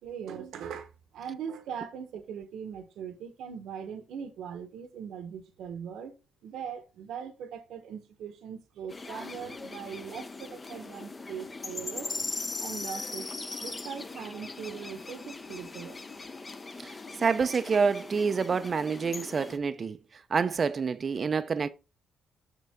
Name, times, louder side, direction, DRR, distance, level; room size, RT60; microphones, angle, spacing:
voice 1, 0.0-6.1 6.4-12.1 12.6-13.3 13.6-16.0, right 7 dB, 80° right, 1.0 m, -40 dB
sound 1, 8.9-19.6, left 3 dB, 30° left, 0.7 m, -40 dB
voice 2, 16.8-21.7, right 5 dB, 40° right, 0.5 m, -28 dB
6.6 x 6.1 x 3.5 m
cardioid pair, 90°, 0 cm